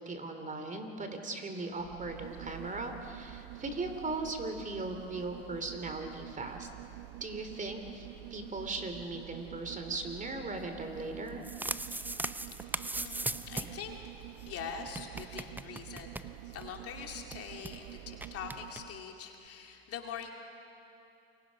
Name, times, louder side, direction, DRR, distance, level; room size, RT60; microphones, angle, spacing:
voice 1, 0.0-6.7 7.2-11.4, right 2 dB, 25° right, 6 dB, 2.8 m, -38 dB
sound 1, 1.7-19.1 19.5-19.6, right 18 dB, 70° right, 0.7 m, -48 dB
sound 2, 11.2-13.9 14.2-14.3 14.4-14.5 14.9-16.8 17.0-17.1 17.3-17.8 18.2-18.8, right 2 dB, 5° right, 0.6 m, -38 dB
voice 2, 11.9-20.3, left 7 dB, 45° left, 2 dB, 2.7 m, -44 dB
29.0 x 23.0 x 5.2 m, 2.8 s
hypercardioid pair, 85°, 31 cm